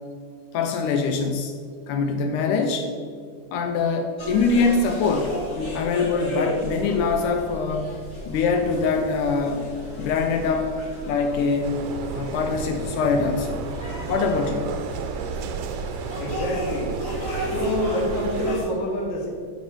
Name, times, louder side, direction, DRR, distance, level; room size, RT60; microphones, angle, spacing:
voice 1, 0.5-1.6 1.9-2.9 3.5-7.9 8.3-9.6 10.0-10.7 11.1-11.8 12.1-13.6 14.1-14.7, left 4 dB, 80° left, 5 dB, 2.1 m, -23 dB
sound 1, 4.2-18.7, equal, 30° left, 1.9 m, -34 dB
sound 2, 11.6-18.5, right 6 dB, 85° right, 2.2 m, -33 dB
voice 2, 16.2-17.0 17.4-19.3, left 1 dB, 50° left, 0 dB, 1.4 m, -27 dB
8.1 x 5.5 x 6.3 m, 2.1 s
omnidirectional pair, 3.8 m